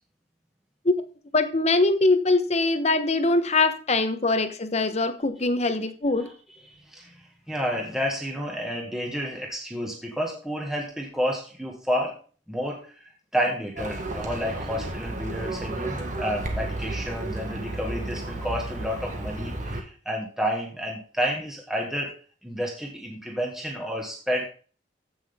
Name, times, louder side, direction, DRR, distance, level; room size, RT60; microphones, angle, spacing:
voice 1, 1.3-6.3, left 2 dB, 40° left, 1.2 m, -22 dB
voice 2, 6.7-12.2 12.5-13.0 13.3-22.2 22.4-24.5, equal, 5° right, 1.9 m, -30 dB
Livestock farm animals working animals, 13.8-19.8, right 2 dB, 45° right, 1.9 m, -32 dB
15.0 x 6.2 x 3.7 m
head